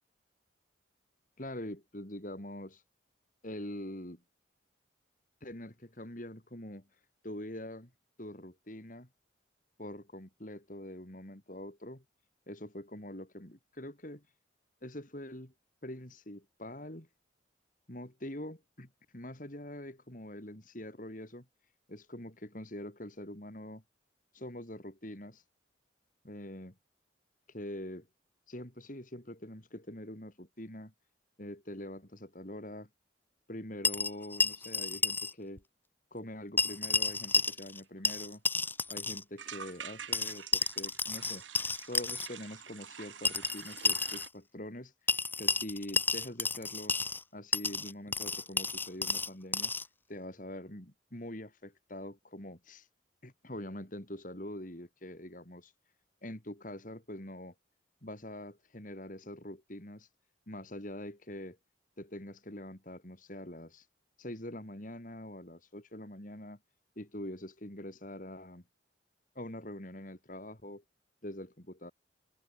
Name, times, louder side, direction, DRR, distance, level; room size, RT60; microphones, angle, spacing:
voice 1, 1.4-2.8 3.4-4.2 5.4-6.8 7.2-7.9 8.2-9.1 9.8-12.0 12.5-14.2 14.8-15.5 15.8-17.1 17.9-18.9 19.1-21.4 21.9-23.8 24.3-25.4 26.2-26.7 27.5-28.1 28.5-30.9 31.4-32.9 33.5-35.6 36.1-38.4 38.9-41.4 41.9-47.0 47.3-49.7 50.1-52.9 53.2-55.7 56.2-57.5 58.0-60.1 60.5-61.6 62.0-63.9 64.2-66.6 67.0-68.6 69.3-70.8 71.2-71.9, left 1 dB, 40° left, 3.2 m, -44 dB
sound 1, 33.8-35.3 35.6-35.7 36.6-37.8 38.1-39.2 40.1-42.3 43.3-44.3 45.1-47.2 47.5-49.9, left 3 dB, 10° left, 0.6 m, -31 dB
sound 2, 38.0-38.1 38.3-38.4 38.6-38.9 39.4-44.3, right 7 dB, 80° right, 6.1 m, -47 dB
head